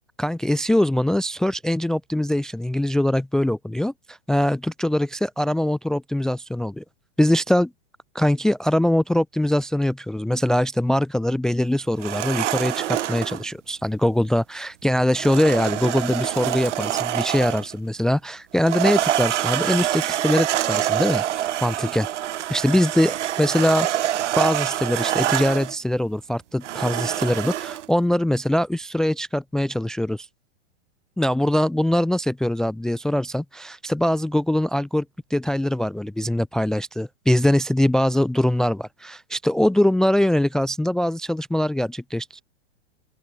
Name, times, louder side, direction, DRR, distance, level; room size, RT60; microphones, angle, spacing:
voice 1, 0.2-6.8 7.2-7.7 8.1-22.1 22.5-24.0 24.4-30.3 31.2-35.0 35.3-42.4, left 1 dB, ahead, 0.6 m, -22 dB
sound 1, 12.0-13.4 15.1-17.7 18.5-25.7 26.6-27.9, right 12 dB, 75° right, 2.0 m, -26 dB
open air
hypercardioid pair, 150°, 36 cm